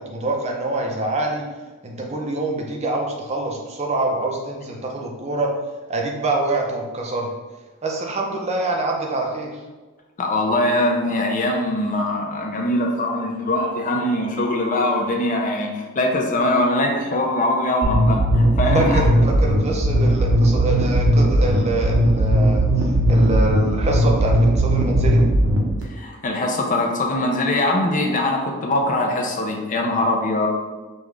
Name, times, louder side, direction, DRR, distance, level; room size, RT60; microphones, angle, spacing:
voice 1, 0.0-1.5 1.8-5.5 5.9-7.3 7.8-9.5 18.7-25.2, right 2 dB, 30° right, 0 dB, 0.6 m, -25 dB
voice 2, 10.2-19.0 25.9-30.5, left 1 dB, 35° left, 1 dB, 0.5 m, -22 dB
sound 1, 17.8-25.8, right 1 dB, 60° right, 0.9 m, -18 dB
5.3 x 2.4 x 3.2 m, 1.3 s
head